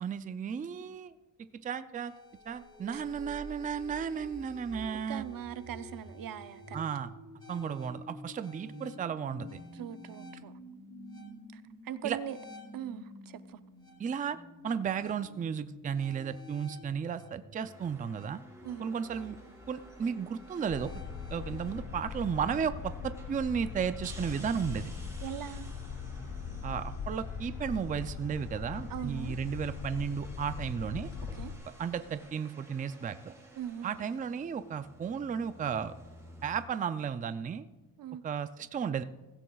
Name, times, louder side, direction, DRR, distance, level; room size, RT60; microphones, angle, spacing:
voice 1, 0.0-1.1 1.6-2.1 2.5-5.2 6.7-7.1 7.5-9.6 12.0-12.2 14.0-14.4 14.6-18.4 18.8-19.4 19.7-20.9 21.3-24.9 26.6-31.1 31.8-33.3 33.8-35.9 36.4-37.6 38.2-39.0, right 7 dB, 25° right, 12 dB, 0.3 m, -34 dB
sound 1, 2.0-21.8, left 1 dB, 15° left, 4.9 m, -50 dB
voice 2, 5.1-6.8 9.7-10.5 11.5-12.4 12.7-13.6 18.6-18.9 25.2-25.7 28.9-29.4 31.4-31.5 33.6-33.9 38.0-38.2, right 10 dB, 70° right, 12 dB, 0.6 m, -40 dB
sound 2, 17.6-36.6, right 1 dB, 10° right, 2.6 m, -54 dB
sound 3, 20.7-31.6, left 5 dB, 55° left, 1.1 m, -40 dB
16.0 x 16.0 x 2.3 m, 1.1 s
wide cardioid pair, 150°, 35 cm